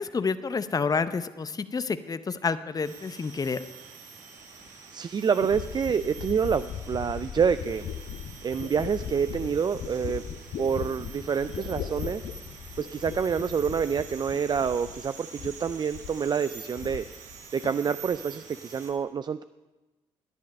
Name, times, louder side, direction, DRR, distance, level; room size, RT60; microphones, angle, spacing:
voice 1, 0.0-3.6, left 5 dB, 30° left, 13 dB, 0.6 m, -29 dB
sound 1, 2.8-18.9, right 5 dB, 65° right, 1.7 m, -47 dB
sound 2, 4.7-4.8 5.4-15.1 15.4-16.2 16.5-17.4 17.6-18.2, left 8 dB, 65° left, 0.9 m, -38 dB
voice 2, 4.9-7.9 8.4-10.2 10.6-12.2 12.8-17.1 17.5-19.4, right 6 dB, 35° right, 13 dB, 0.4 m, -27 dB
10.5 x 10.5 x 5.3 m, 1.1 s
hypercardioid pair, 50°, 14 cm